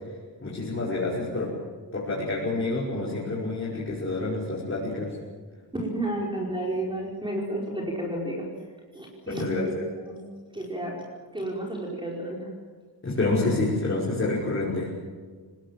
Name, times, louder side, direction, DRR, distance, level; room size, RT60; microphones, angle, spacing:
voice 1, 0.4-1.6 1.9-5.2 9.3-9.7 13.0-14.9, left 2 dB, 35° left, -6 dB, 5.8 m, -28 dB
voice 2, 5.7-8.5 8.9-9.7 10.0-10.2 10.5-11.0 11.3-12.5, right 1 dB, 10° right, -2 dB, 4.8 m, -31 dB
29.5 x 19.5 x 7.6 m, 1.5 s
wide cardioid pair, 145°, 39 cm